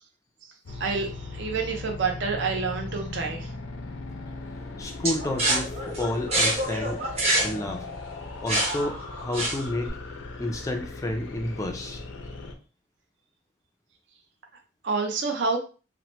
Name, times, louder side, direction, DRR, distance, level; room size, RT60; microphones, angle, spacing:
sound 1, 0.7-12.6, left 3 dB, 80° left, 0.5 m, -38 dB
voice 1, 0.7-3.5 14.8-15.6, right 4 dB, 65° right, 3 dB, 0.5 m, -28 dB
voice 2, 4.8-7.0 7.4-7.9 8.4-10.0 10.4-12.0, left 1 dB, 15° left, 4 dB, 0.3 m, -30 dB
sound 2, 5.0-9.9, right 1 dB, 30° right, 0.8 m, -27 dB
2.8 x 2.1 x 3.0 m, 0.35 s
head